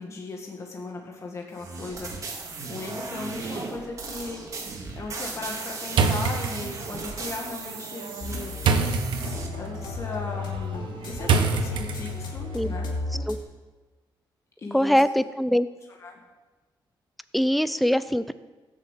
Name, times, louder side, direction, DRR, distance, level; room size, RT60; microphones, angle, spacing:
voice 1, 0.0-2.3 2.7-4.5 4.9-8.6 9.6-12.9 14.6-15.0 15.9-16.2, left 3 dB, 35° left, 0 dB, 1.9 m, -37 dB
sound 1, 1.6-9.5, right 3 dB, 40° right, 2.1 m, -36 dB
sound 2, 5.9-12.4, right 5 dB, 75° right, 1.3 m, -28 dB
sound 3, 8.2-13.4, left 3 dB, 65° left, 2.6 m, -34 dB
voice 2, 14.7-15.7 17.3-18.3, equal, ahead, 14 dB, 0.5 m, -22 dB
17.0 x 7.2 x 8.3 m, 1.2 s
wide cardioid pair, 165°, 8 cm